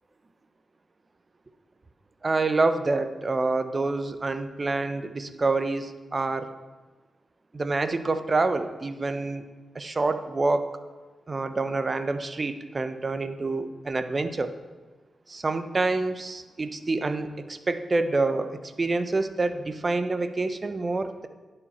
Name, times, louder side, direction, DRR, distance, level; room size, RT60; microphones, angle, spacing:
voice 1, 2.2-6.5 7.5-9.4 9.7-10.8 11.3-14.6 15.3-21.3, right 3 dB, 40° right, 10 dB, 0.7 m, -27 dB
10.5 x 4.9 x 4.3 m, 1.3 s
cardioid pair, 50°, 0 cm